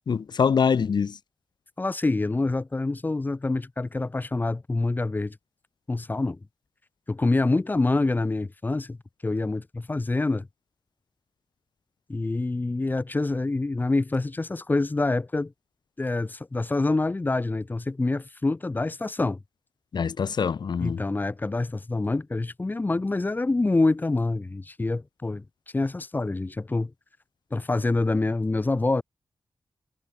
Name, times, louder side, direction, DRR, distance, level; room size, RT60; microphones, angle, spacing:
voice 1, 0.1-1.2 19.9-21.0, left 6 dB, 65° left, 1.4 m, -24 dB
voice 2, 1.8-5.4 5.9-6.4 7.1-9.0 9.2-10.5 12.1-15.5 16.0-19.4 20.8-25.4 25.7-26.9 27.5-29.0, left 2 dB, 25° left, 1.3 m, -26 dB
wide cardioid pair, 140°, 8 cm